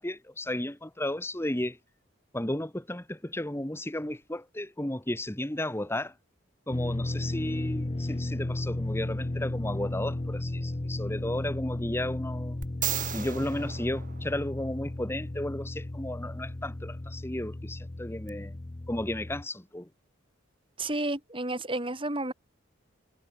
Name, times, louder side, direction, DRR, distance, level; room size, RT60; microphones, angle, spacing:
voice 1, 0.0-1.8 2.3-6.1 6.7-12.6 13.1-18.6 18.9-19.9, left 1 dB, 10° left, 1.3 m, -34 dB
sound 1, 6.7-19.4, left 1 dB, 30° left, 0.7 m, -34 dB
sound 2, 12.6-14.9 18.3-18.4, right 10 dB, 40° right, 2.9 m, -35 dB
voice 2, 20.8-22.3, right 2 dB, 25° right, 3.7 m, -31 dB
head